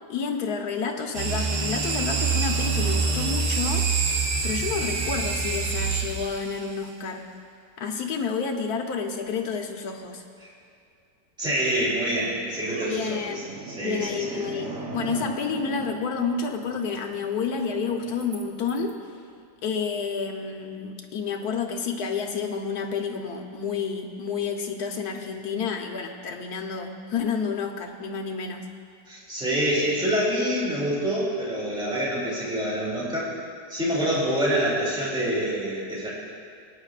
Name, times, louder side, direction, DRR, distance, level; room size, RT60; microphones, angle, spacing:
voice 1, 0.1-3.9 4.4-7.3 7.8-10.2 12.9-19.0 19.6-28.7, left 5 dB, 70° left, 3 dB, 1.4 m, -30 dB
sound 1, 1.1-6.7, right 5 dB, 90° right, 1.6 m, -26 dB
voice 2, 11.4-13.2 13.7-14.6 29.1-33.3 33.7-36.1, equal, 5° right, -6 dB, 2.6 m, -26 dB
sound 2, 11.9-18.9, right 2 dB, 45° right, 1.3 m, -40 dB
21.5 x 9.6 x 2.4 m, 2.4 s
omnidirectional pair, 1.8 m